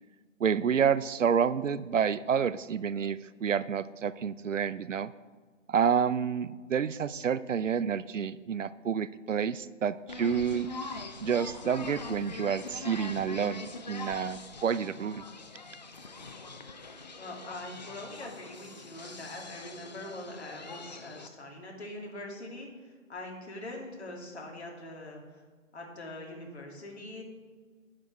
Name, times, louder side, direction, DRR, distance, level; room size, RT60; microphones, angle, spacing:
voice 1, 0.4-5.1 5.7-10.7 11.2-15.2, right 7 dB, 70° right, 17 dB, 0.6 m, -29 dB
sound 1, 10.1-21.3, left 3 dB, 35° left, 0.6 m, -43 dB
voice 2, 17.2-25.2 25.7-27.2, left 1 dB, 55° left, 0 dB, 2.8 m, -43 dB
11.5 x 7.6 x 4.7 m, 1.5 s
figure-of-eight pair, 155°, 40 cm